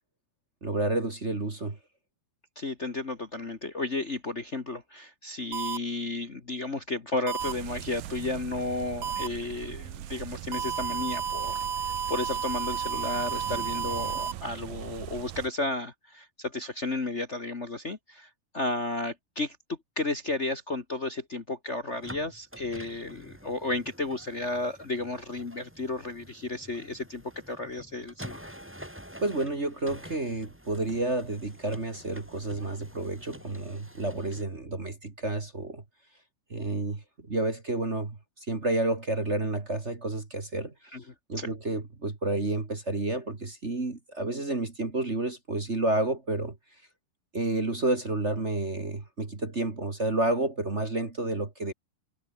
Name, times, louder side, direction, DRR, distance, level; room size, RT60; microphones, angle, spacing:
voice 1, 0.6-1.8 29.2-35.8 36.5-40.7 41.3-46.5 47.3-51.7, right 2 dB, 25° right, 1.8 m, -30 dB
voice 2, 2.5-19.6 19.9-28.4 40.9-41.0 41.3-41.5, left 2 dB, 60° left, 0.7 m, -33 dB
sound 1, 5.5-5.8 7.3-7.5 9.0-9.3 10.5-14.3, right 7 dB, 45° right, 1.5 m, -31 dB
sound 2, 7.4-15.5, right 12 dB, 70° right, 2.9 m, -41 dB
sound 3, 21.9-34.4, equal, 5° right, 3.9 m, -48 dB
omnidirectional pair, 4.3 m